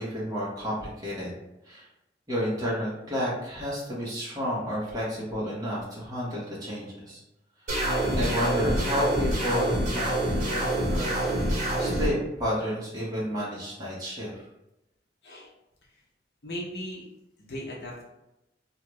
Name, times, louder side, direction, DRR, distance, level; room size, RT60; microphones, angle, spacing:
voice 1, 0.0-1.3 1.6-1.9 2.3-7.2 8.1-11.3 11.8-14.5, equal, 20° right, -7 dB, 1.1 m, -31 dB
sound 1, 7.7-12.1, right 1 dB, 45° right, 1.4 m, -26 dB
voice 2, 16.4-17.0 17.4-18.0, equal, 60° left, -3 dB, 0.7 m, -37 dB
2.8 x 2.4 x 3.1 m, 0.90 s
head